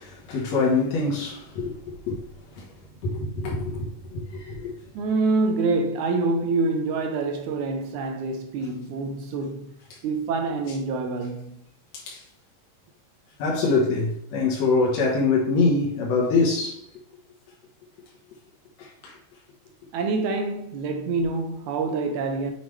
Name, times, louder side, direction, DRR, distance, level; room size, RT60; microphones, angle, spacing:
voice 1, 0.0-2.2 2.5-2.7 3.0-4.8 9.9-10.0 11.9-12.3 13.4-16.9 18.8-19.2, left 3 dB, 65° left, 2.0 m, -25 dB
voice 2, 5.0-9.7 10.0-11.6 19.9-22.5, right 3 dB, 75° right, 1.9 m, -26 dB
7.3 x 4.7 x 3.2 m
omnidirectional pair, 3.9 m